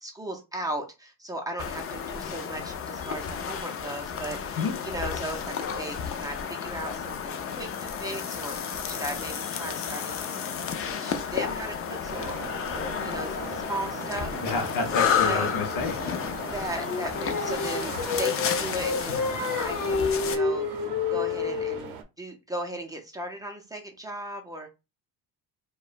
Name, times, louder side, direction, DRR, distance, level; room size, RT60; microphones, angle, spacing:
voice 1, 0.0-10.2 10.8-12.3 13.0-14.4 14.8-15.5 16.5-19.2 19.6-20.8 21.1-24.7, right 1 dB, 10° right, 0.5 m, -37 dB
sound 1, 1.6-20.4, left 7 dB, 35° left, 0.4 m, -31 dB
sound 2, 12.0-22.0, right 8 dB, 55° right, 0.7 m, -41 dB
voice 2, 14.4-16.0, left 4 dB, 55° left, 0.8 m, -29 dB
Singing, 16.7-21.9, left 5 dB, 80° left, 1.1 m, -29 dB
4.8 x 2.2 x 2.4 m
cardioid pair, 145°, 41 cm